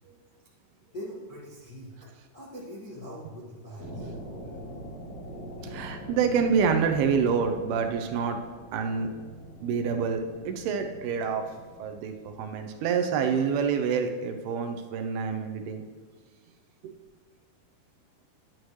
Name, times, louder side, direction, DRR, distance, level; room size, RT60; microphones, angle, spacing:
voice 1, 0.9-2.1 2.3-4.1, equal, 50° left, -8 dB, 1.0 m, -42 dB
sound 1, 3.8-13.7, equal, 20° left, 3.2 m, -43 dB
voice 2, 5.6-8.4 8.7-9.1 9.6-11.5 11.8-15.8 16.8-16.9, right 6 dB, 80° right, 6 dB, 2.6 m, -27 dB
10.5 x 10.0 x 3.2 m, 1.4 s
omnidirectional pair, 4.7 m